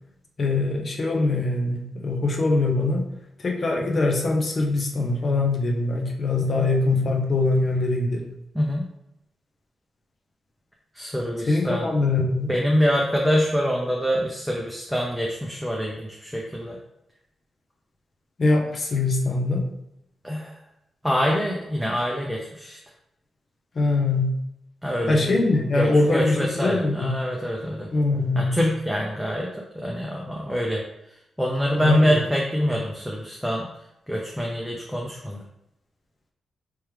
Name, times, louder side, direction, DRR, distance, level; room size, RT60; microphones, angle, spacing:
voice 1, 0.4-3.1 3.4-8.2 11.5-12.5 18.4-19.7 23.7-24.4 25.1-27.2 27.9-28.6 31.7-32.2, left 2 dB, 50° left, 1 dB, 0.8 m, -23 dB
voice 2, 8.5-8.9 10.9-11.9 12.5-16.8 20.2-20.5 21.0-22.8 24.8-25.4 25.7-27.9 28.4-29.5 29.7-30.8 31.4-33.7 34.1-35.4, equal, ahead, -2 dB, 0.7 m, -25 dB
3.6 x 3.0 x 3.2 m, 0.84 s
supercardioid pair, 50°, 0 cm